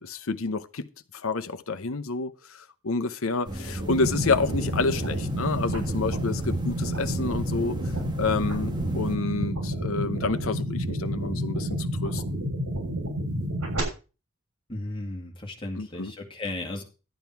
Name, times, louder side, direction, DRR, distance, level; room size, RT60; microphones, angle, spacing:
voice 1, 0.0-0.9 1.1-7.8 8.1-12.4 15.8-16.1, left 3 dB, 65° left, 0.8 m, -29 dB
sound 1, 3.4-9.2, right 1 dB, 20° right, 1.4 m, -35 dB
sound 2, 3.8-13.8, equal, 80° right, 6.6 m, -30 dB
voice 2, 14.7-16.8, left 2 dB, 25° left, 2.1 m, -35 dB
12.0 x 8.9 x 4.6 m
head